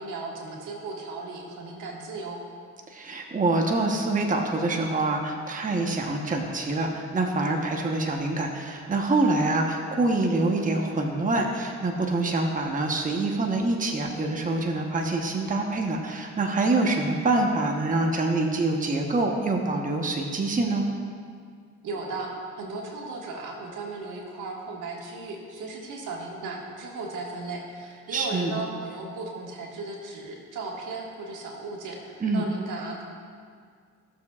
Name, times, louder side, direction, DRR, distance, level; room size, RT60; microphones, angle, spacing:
voice 1, 0.0-2.4 21.8-22.3 22.6-33.0, right 3 dB, 85° right, -1 dB, 1.7 m, -36 dB
voice 2, 2.9-20.8 28.1-28.5 32.2-32.4, right 2 dB, 25° right, 1 dB, 1.0 m, -25 dB
16.0 x 6.9 x 2.4 m, 2.1 s
cardioid pair, 90°, 30 cm